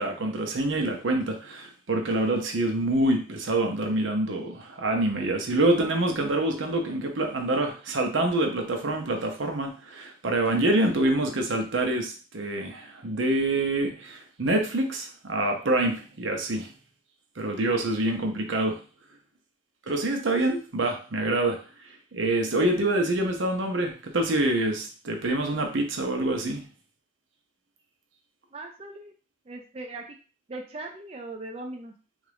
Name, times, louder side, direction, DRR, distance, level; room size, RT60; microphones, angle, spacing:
voice 1, 0.0-16.7 17.4-18.8 19.9-21.6 22.1-26.6, right 1 dB, 85° right, 3 dB, 0.8 m, -26 dB
voice 2, 28.5-29.1 29.5-30.0 30.5-31.9, right 2 dB, 30° right, 2 dB, 0.4 m, -39 dB
3.5 x 2.5 x 3.4 m, 0.37 s
head